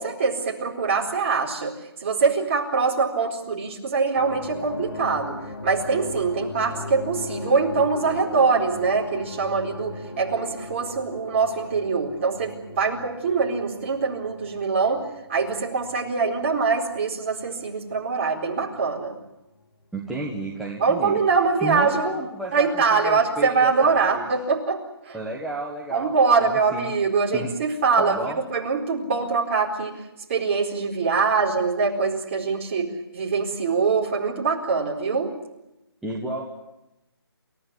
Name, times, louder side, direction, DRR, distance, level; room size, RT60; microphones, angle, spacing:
voice 1, 0.0-1.7 2.0-5.4 5.6-15.0 15.3-19.2 20.8-22.1 22.5-25.2 25.9-28.2 28.5-29.9 30.3-35.3, right 4 dB, 30° right, -1 dB, 4.4 m, -23 dB
sound 1, 4.2-18.0 18.5-19.0, left 2 dB, 80° left, 4.4 m, -38 dB
voice 2, 19.9-21.2 21.6-24.3 25.1-26.1 26.4-26.9 27.3-27.5 28.0-28.4 36.0-36.4, right 2 dB, ahead, -5 dB, 1.4 m, -32 dB
29.0 x 16.0 x 9.8 m, 0.92 s
hypercardioid pair, 170°, 13 cm